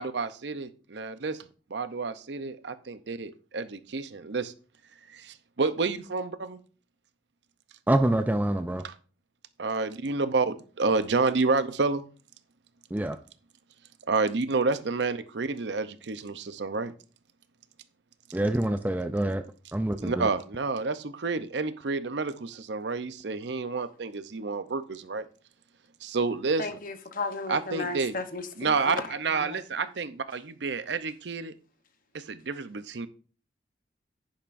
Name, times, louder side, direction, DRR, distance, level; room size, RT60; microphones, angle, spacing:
voice 1, 0.0-4.5 5.1-6.6 8.8-8.9 9.6-12.0 14.1-16.9 20.0-25.3 26.0-26.6 27.5-28.1 28.6-31.5 32.1-33.1, right 4 dB, 70° right, 0.7 m, -29 dB
voice 2, 7.9-8.8 12.9-13.2 18.3-19.4 19.7-20.3, right 1 dB, 10° right, 0.3 m, -26 dB
voice 3, 26.6-29.9, left 3 dB, 50° left, 1.0 m, -35 dB
10.5 x 10.0 x 2.6 m
head